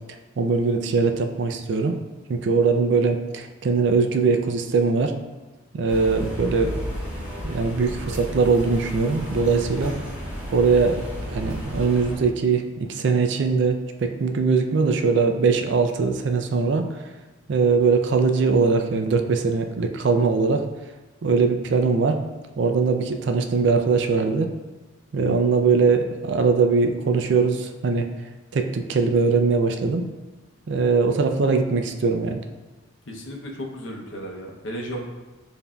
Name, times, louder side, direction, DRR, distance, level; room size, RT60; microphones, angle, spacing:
voice 1, 0.4-2.0 2.3-5.1 5.7-6.8 7.4-9.9 10.5-16.9 17.5-20.7 21.2-22.2 22.6-24.5 25.1-28.1 28.5-30.1 30.7-32.4, right 4 dB, 60° right, 5 dB, 0.3 m, -21 dB
sound 1, 5.9-12.2, equal, 10° right, 1.5 m, -32 dB
voice 2, 33.1-35.0, equal, 70° left, 0 dB, 0.7 m, -34 dB
6.9 x 2.6 x 2.3 m, 1.2 s
head